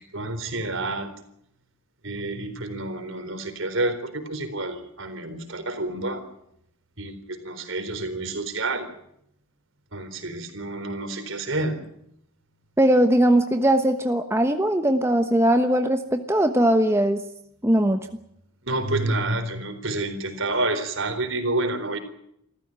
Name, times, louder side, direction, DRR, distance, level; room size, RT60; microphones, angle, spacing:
voice 1, 0.1-1.1 2.0-6.2 7.0-8.9 9.9-11.8 18.6-22.0, right 2 dB, 65° right, 9 dB, 4.1 m, -29 dB
voice 2, 12.8-17.2 17.6-18.0, right 1 dB, 10° right, 6 dB, 1.1 m, -20 dB
27.5 x 14.5 x 8.9 m, 0.75 s
head